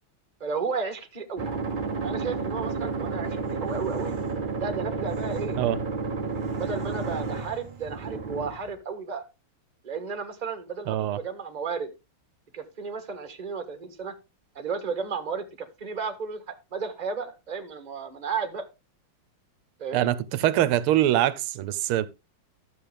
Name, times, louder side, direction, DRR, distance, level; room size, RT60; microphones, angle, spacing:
voice 1, 0.4-1.5 2.0-4.1 4.6-5.6 6.6-9.2 9.8-11.9 12.5-14.1 14.5-18.6 19.8-20.1, right 5 dB, 25° right, 1.4 m, -33 dB
sound 1, 1.4-8.7, right 4 dB, 40° right, 0.7 m, -31 dB
voice 2, 10.9-11.2 19.9-22.1, right 13 dB, 90° right, 1.6 m, -23 dB
12.5 x 7.4 x 3.3 m
omnidirectional pair, 2.3 m